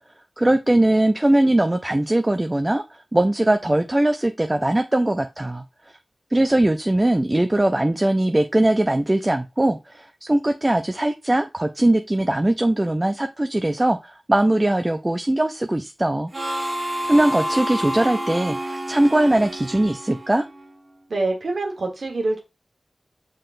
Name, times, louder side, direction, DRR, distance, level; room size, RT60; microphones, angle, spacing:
voice 1, 0.4-5.6 6.3-16.3 17.0-20.4, right 1 dB, 25° right, 8 dB, 0.4 m, -20 dB
Harmonica, 16.3-20.8, equal, 45° right, 1.3 m, -29 dB
voice 2, 21.1-22.4, right 2 dB, 75° right, 1 dB, 1.2 m, -25 dB
5.5 x 3.8 x 2.5 m, 0.26 s
wide cardioid pair, 60°, 0 cm